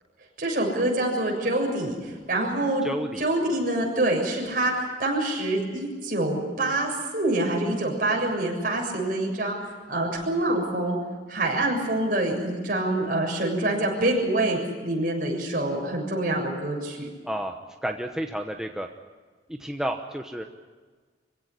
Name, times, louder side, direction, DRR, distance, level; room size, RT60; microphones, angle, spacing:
voice 1, 0.4-2.9 3.2-11.0 11.3-17.1, right 1 dB, 50° right, 0 dB, 7.1 m, -26 dB
voice 2, 2.8-3.2 17.2-17.5 17.8-18.9 19.5-20.4, right 1 dB, 5° right, 3 dB, 1.0 m, -31 dB
25.5 x 16.5 x 9.9 m, 1.4 s
head